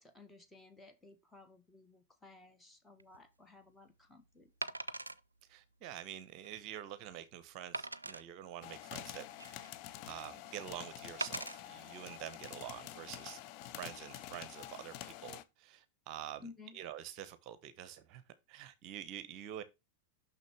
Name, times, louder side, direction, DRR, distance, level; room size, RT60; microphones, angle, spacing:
voice 1, 0.0-4.7 16.4-16.8, left 3 dB, 10° left, 1.3 m, -57 dB
Wood, 3.0-3.2 4.6-5.2 5.8-5.9 6.4-6.5 7.7-8.2 9.0-9.8 11.2-11.6 12.3-12.5, right 2 dB, 80° right, 0.4 m, -41 dB
voice 2, 5.5-9.7 10.1-16.5 16.7-18.2 18.5-19.6, right 11 dB, 40° right, 0.8 m, -47 dB
sound 1, 8.6-15.4, left 13 dB, 45° left, 0.6 m, -48 dB
6.5 x 6.0 x 3.3 m
figure-of-eight pair, 90°, 0 cm